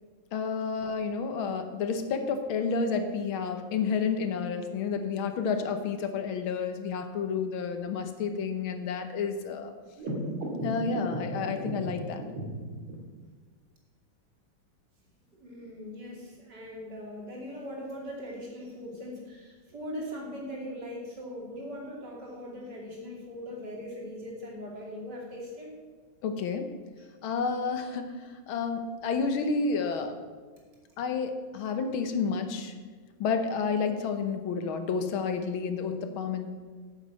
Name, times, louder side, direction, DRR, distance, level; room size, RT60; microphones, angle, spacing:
voice 1, 0.3-9.7 10.6-12.3 26.2-26.7 27.2-30.2 31.0-32.7 33.2-36.6, left 5 dB, 80° left, 7 dB, 1.9 m, -30 dB
sound 1, 10.0-12.9, right 1 dB, 80° right, 3.0 m, -35 dB
voice 2, 15.3-25.7 27.0-27.1, equal, 55° right, -3 dB, 3.3 m, -40 dB
9.3 x 7.3 x 7.5 m, 1.5 s
omnidirectional pair, 2.2 m